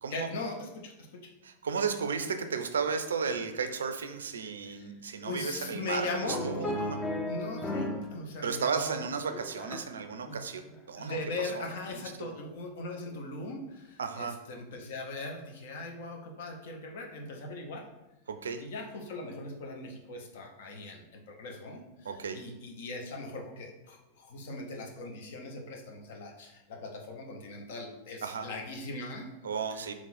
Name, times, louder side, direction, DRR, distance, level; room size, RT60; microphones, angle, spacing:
voice 1, 0.1-1.3 4.6-4.9 5.2-7.0 7.3-9.1 10.2-10.4 10.7-17.9 18.6-29.3 29.7-29.9, left 2 dB, 55° left, 2 dB, 0.8 m, -40 dB
voice 2, 1.4-7.0 8.4-11.2 11.5-11.7 11.9-12.3 14.0-14.4 18.3-18.6 22.0-22.4 28.2-28.5 29.4-29.9, right 5 dB, 70° right, 8 dB, 0.4 m, -34 dB
sound 1, 6.3-8.1 8.4-10.0 10.5-10.8, left 1 dB, 20° left, 0.6 m, -35 dB
3.8 x 3.0 x 4.2 m, 0.98 s
figure-of-eight pair, 90°, 0 cm